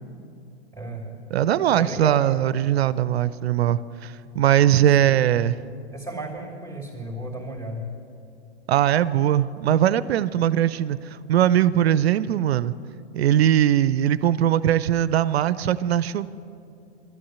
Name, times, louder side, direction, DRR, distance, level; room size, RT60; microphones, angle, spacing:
voice 1, 0.7-1.2 1.7-2.4 5.0-5.2 5.9-7.9, right 1 dB, 10° left, -1 dB, 2.8 m, -34 dB
voice 2, 1.3-5.6 8.7-12.7 13.1-16.3, right 11 dB, 70° right, 16 dB, 0.5 m, -20 dB
12.0 x 11.5 x 9.4 m, 2.6 s
hypercardioid pair, 105°, 32 cm